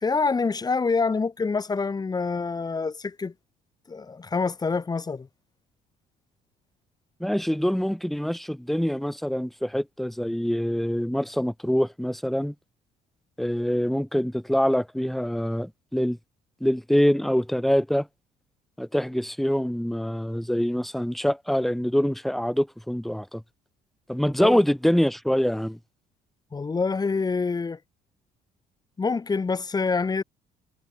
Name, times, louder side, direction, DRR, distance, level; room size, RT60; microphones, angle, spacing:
voice 1, 0.0-3.3 3.9-5.3 24.4-24.6 26.5-27.8 29.0-30.2, left 4 dB, 25° left, 1.8 m, -26 dB
voice 2, 7.2-12.5 13.4-16.2 16.6-18.1 18.8-23.4 24.1-25.8, equal, ahead, 0.9 m, -25 dB
cardioid pair, 110°, 17 cm